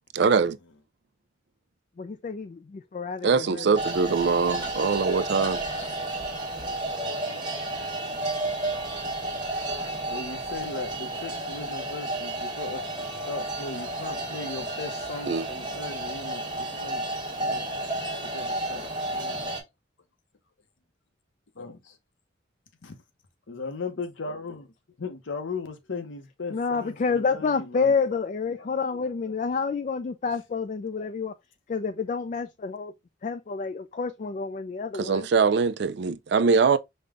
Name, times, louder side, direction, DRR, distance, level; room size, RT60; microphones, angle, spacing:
voice 1, 0.1-0.6 3.2-5.6 15.3-15.5 35.0-36.8, right 5 dB, 60° right, 0.4 m, -22 dB
voice 2, 2.0-3.8 26.5-31.3 31.7-32.9 33.2-35.3, left 5 dB, 40° left, 0.3 m, -29 dB
sound 1, 3.8-19.6, right 2 dB, 25° right, 1.3 m, -32 dB
voice 3, 9.9-12.8 13.3-17.0 17.4-17.6 18.2-19.4 21.6-22.0 22.8-22.9 23.5-24.7 25.0-28.2 28.5-29.3, left 4 dB, 85° left, 0.8 m, -38 dB
5.3 x 2.2 x 3.5 m
head